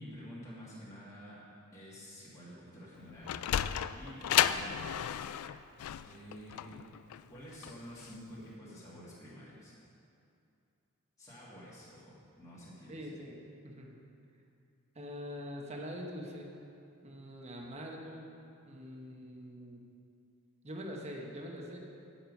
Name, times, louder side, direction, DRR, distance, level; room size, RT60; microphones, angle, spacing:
voice 1, 0.0-1.4 1.7-3.7 4.0-5.1 6.0-6.7 7.3-9.7 11.2-12.9, equal, 15° left, -9 dB, 2.0 m, -49 dB
Sliding door, 3.0-8.1, left 10 dB, 90° left, 0.3 m, -33 dB
voice 2, 12.9-14.0 14.9-16.5 17.0-18.3 18.7-19.8 20.6-21.8, equal, 30° right, 0 dB, 1.0 m, -44 dB
9.6 x 7.1 x 5.3 m, 2.5 s
head